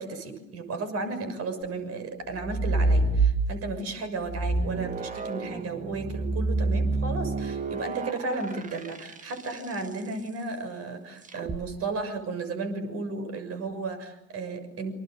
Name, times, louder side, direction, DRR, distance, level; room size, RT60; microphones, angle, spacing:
voice 1, 0.0-14.9, right 3 dB, 35° right, 8 dB, 6.5 m, -34 dB
sound 1, 2.3-3.8 4.2-9.7 11.3-11.6, right 3 dB, 20° right, 1.9 m, -27 dB
29.0 x 26.0 x 6.8 m, 0.90 s
figure-of-eight pair, 85°, 40 cm